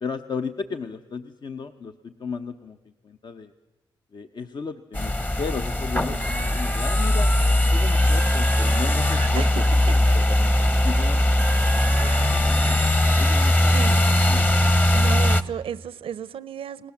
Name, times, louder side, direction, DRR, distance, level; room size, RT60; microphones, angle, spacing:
voice 1, 0.0-2.8 3.0-3.5 4.1-7.3 7.7-9.4 9.9-11.2 12.0-12.8 13.2-14.5, left 5 dB, 55° left, 7 dB, 0.9 m, -35 dB
sound 1, 4.9-15.4, left 1 dB, 20° left, 1.0 m, -20 dB
voice 2, 6.1-6.6 9.4-9.6 10.1-10.2 13.3-14.1 14.9-16.9, right 8 dB, 90° right, 17 dB, 0.7 m, -35 dB
30.0 x 18.5 x 7.2 m, 1.2 s
cardioid pair, 85°, 9 cm